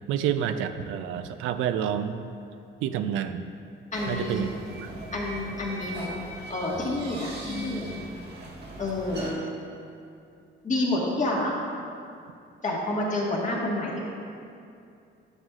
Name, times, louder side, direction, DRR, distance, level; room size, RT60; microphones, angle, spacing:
voice 1, 0.1-2.3 2.8-3.4 4.1-4.6 4.8-4.9, right 9 dB, 90° right, 9 dB, 0.4 m, -28 dB
voice 2, 3.9-4.4 5.1-6.2 6.5-8.0 8.8-9.4 10.6-11.6 12.6-14.0, left 1 dB, 40° left, -3 dB, 1.6 m, -29 dB
sound 1, 3.9-9.3, right 1 dB, 60° right, 1.6 m, -39 dB
9.5 x 6.3 x 2.4 m, 2.5 s
cardioid pair, 90°, 20 cm